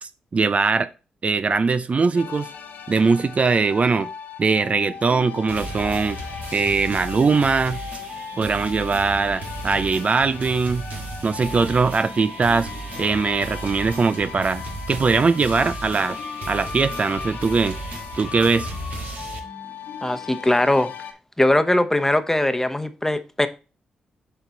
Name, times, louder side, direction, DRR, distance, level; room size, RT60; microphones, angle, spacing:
voice 1, 0.0-0.9 1.2-2.5 2.9-4.1 4.4-6.2 6.5-7.8 8.4-10.8 11.2-12.7 13.0-16.2 16.5-17.8 18.2-18.7, right 4 dB, 45° right, 0.4 m, -21 dB
sound 1, 2.1-21.1, left 7 dB, 70° left, 1.2 m, -37 dB
sound 2, 5.5-19.4, right 2 dB, 65° right, 1.6 m, -35 dB
voice 2, 20.0-20.9 21.4-23.5, left 1 dB, 15° left, 0.9 m, -20 dB
6.9 x 4.5 x 3.9 m
supercardioid pair, 45°, 3 cm